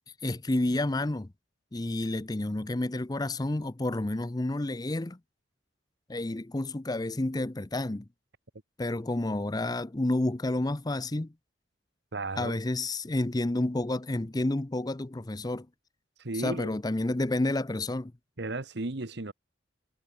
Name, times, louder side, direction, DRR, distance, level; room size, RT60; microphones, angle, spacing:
voice 1, 0.2-1.3 1.7-5.2 6.1-8.1 8.8-11.3 12.4-15.7 16.3-18.1, left 2 dB, 20° left, 0.6 m, -30 dB
voice 2, 12.1-12.6 16.2-16.7 18.4-19.3, right 2 dB, 60° right, 1.3 m, -34 dB
head